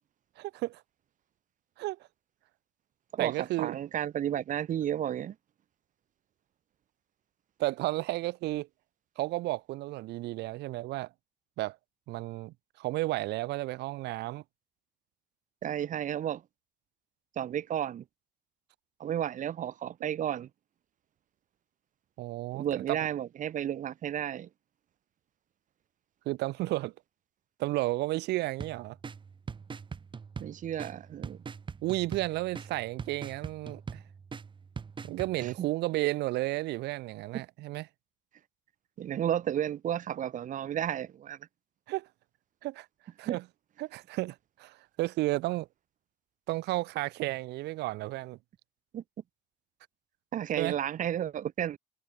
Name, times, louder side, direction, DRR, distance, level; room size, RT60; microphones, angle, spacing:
voice 1, 0.4-0.8 1.8-2.0 3.2-3.7 7.6-8.7 9.2-11.1 11.6-11.8 12.1-14.4 22.2-23.0 26.2-26.9 27.6-29.0 31.8-34.0 35.0-37.8 41.9-42.1 42.6-42.9 43.2-43.4 43.8-45.7 46.5-48.4 50.5-50.7, right 18 dB, 80° right, 1.6 m, -32 dB
voice 2, 3.1-5.4 15.6-16.4 17.4-18.0 19.0-20.5 22.5-24.5 30.4-31.4 35.4-35.7 39.0-41.4 43.2-43.4 48.9-49.0 50.3-51.8, right 10 dB, 50° right, 1.0 m, -32 dB
sound 1, 28.6-35.6, right 5 dB, 30° right, 1.5 m, -43 dB
cardioid pair, 110°, 17 cm